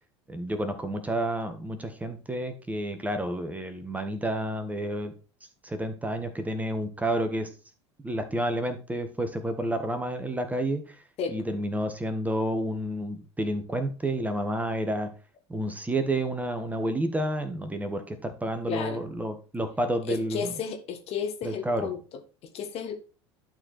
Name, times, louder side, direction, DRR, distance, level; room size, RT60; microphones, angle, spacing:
voice 1, 0.3-5.1 5.6-7.5 8.0-11.0 11.3-15.1 15.5-20.5 21.4-21.9, right 1 dB, 10° right, 1.6 m, -30 dB
voice 2, 18.7-19.0 20.1-22.0 22.5-23.0, left 7 dB, 45° left, 1.5 m, -32 dB
11.5 x 4.6 x 4.4 m
figure-of-eight pair, 70°, 15 cm